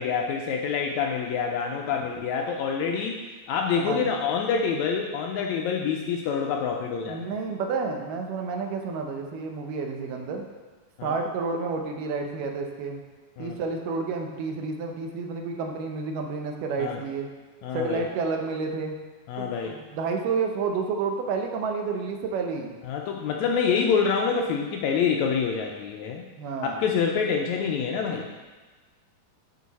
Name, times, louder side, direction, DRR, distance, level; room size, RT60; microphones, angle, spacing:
voice 1, 0.0-3.2 3.5-7.3 11.0-11.1 13.4-13.6 16.8-17.0 17.6-18.0 19.3-19.7 22.8-26.3 26.6-28.3, left 6 dB, 80° left, 1 dB, 1.7 m, -26 dB
voice 2, 3.8-4.1 7.1-10.4 11.0-13.0 13.4-17.3 17.7-19.0 19.4-22.8 26.4-26.8, right 4 dB, 90° right, 3 dB, 2.5 m, -30 dB
11.0 x 4.6 x 4.1 m, 1.3 s
omnidirectional pair, 3.7 m